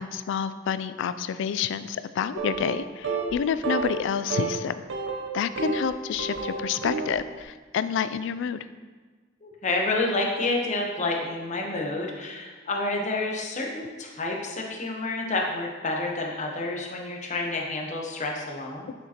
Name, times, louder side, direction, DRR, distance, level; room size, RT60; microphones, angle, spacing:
voice 1, 0.0-4.8 5.3-8.6, left 7 dB, 65° left, 13 dB, 0.3 m, -28 dB
sound 1, 2.4-2.8 3.0-3.3 3.6-4.0 4.3-4.5 4.9-5.9 6.2-7.1, right 5 dB, 65° right, 0.7 m, -30 dB
voice 2, 9.4-18.9, left 2 dB, 40° left, 0 dB, 0.9 m, -29 dB
6.7 x 6.4 x 2.9 m, 1.4 s
head